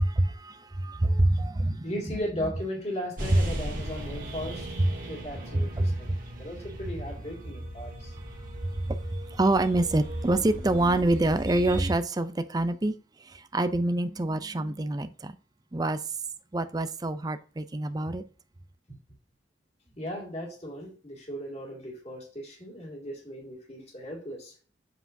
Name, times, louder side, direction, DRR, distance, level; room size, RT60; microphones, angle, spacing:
voice 1, 0.0-2.5 3.3-3.8 4.8-5.0 5.5-6.3 6.8-6.9 8.6-15.4 15.7-16.0 16.5-18.2, right 1 dB, 20° right, 0.5 m, -27 dB
voice 2, 1.8-4.7 5.1-8.1 18.9-19.0 20.0-24.5, equal, 35° left, 2.3 m, -37 dB
sound 1, 3.2-11.9, right 1 dB, 50° right, 1.7 m, -37 dB
7.8 x 4.8 x 2.7 m
head